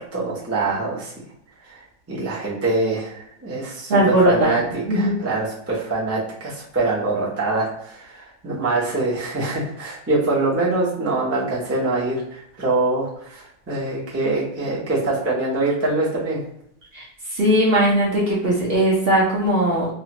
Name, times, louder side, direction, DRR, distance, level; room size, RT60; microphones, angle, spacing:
voice 1, 0.1-1.1 2.1-16.4, right 2 dB, 15° right, -6 dB, 0.6 m, -24 dB
voice 2, 3.9-4.6 4.9-5.1 16.9-17.0 17.3-19.9, right 1 dB, 45° right, -5 dB, 0.9 m, -18 dB
3.1 x 2.4 x 2.9 m, 0.74 s
omnidirectional pair, 1.7 m